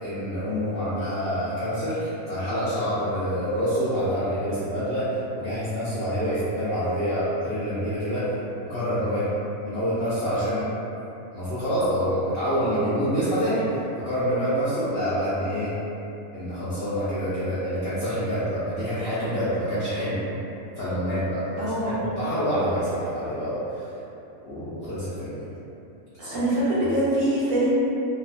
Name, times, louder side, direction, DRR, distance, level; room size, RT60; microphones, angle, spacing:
voice 1, 0.0-8.3 8.7-9.3 9.6-10.6 11.3-13.8 14.0-15.7 16.3-20.2 20.8-23.8 24.4-25.5 26.1-26.4, equal, 60° left, -12 dB, 0.6 m, -27 dB
voice 2, 21.6-22.1 26.2-27.7, right 1 dB, 70° right, -8 dB, 1.0 m, -24 dB
2.7 x 2.2 x 2.5 m, 2.9 s
omnidirectional pair, 1.6 m